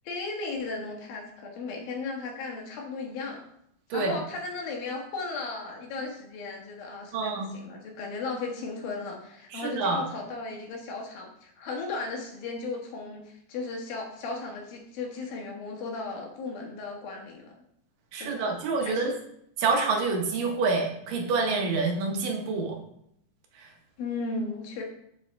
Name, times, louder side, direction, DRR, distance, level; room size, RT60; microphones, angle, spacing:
voice 1, 0.0-3.4 3.9-17.4 18.2-18.5 18.8-19.1 24.0-24.8, left 3 dB, 90° left, 0 dB, 3.3 m, -36 dB
voice 2, 7.1-7.5 9.5-10.0 18.1-19.1 19.6-22.8 23.6-23.7, right 4 dB, 75° right, 2 dB, 2.9 m, -27 dB
7.4 x 7.1 x 3.4 m, 0.73 s
omnidirectional pair, 4.0 m